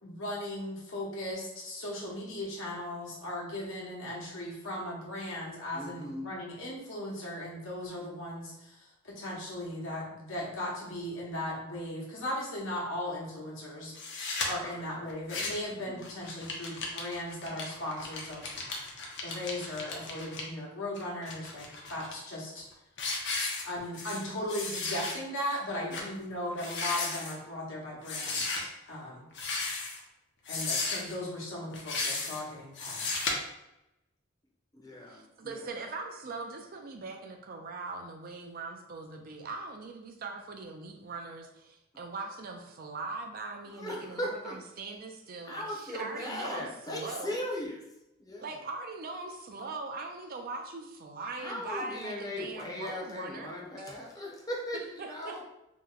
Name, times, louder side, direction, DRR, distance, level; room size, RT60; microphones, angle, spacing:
voice 1, 0.0-13.9 14.5-18.5 19.2-22.6 23.6-29.3 30.5-33.3, left 1 dB, 80° left, -4 dB, 1.0 m, -37 dB
voice 2, 5.7-6.3 14.6-15.1 15.7-16.0 25.9-26.1 34.7-35.6 43.7-44.6 45.4-47.8 48.2-48.5 51.4-55.4, left 1 dB, 20° left, -2 dB, 0.6 m, -38 dB
sound 1, 14.0-14.5 15.1-15.7 16.0-20.4 21.0-22.1 22.6-22.7 23.0-24.2 24.5-25.1 25.5-25.6 25.9-26.1 26.5-27.4 28.0-28.6 29.3-30.0 30.5-31.1 31.7-32.4 32.8-33.3, left 3 dB, 60° left, 0.6 m, -35 dB
voice 3, 35.1-47.4 48.4-53.9 54.2-54.3 55.0-55.4, right 3 dB, 50° right, 4 dB, 0.4 m, -41 dB
2.8 x 2.1 x 3.8 m, 0.91 s
head